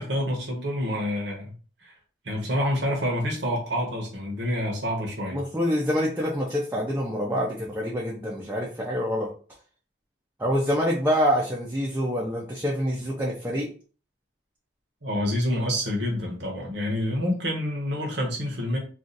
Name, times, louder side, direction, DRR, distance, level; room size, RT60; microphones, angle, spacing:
voice 1, 0.0-1.5 1.8-1.9 2.2-5.4 15.0-18.8, equal, 65° right, 0 dB, 0.9 m, -27 dB
voice 2, 5.3-9.3 10.4-13.7, equal, 10° right, -4 dB, 0.5 m, -26 dB
2.6 x 2.4 x 3.8 m, 0.39 s
head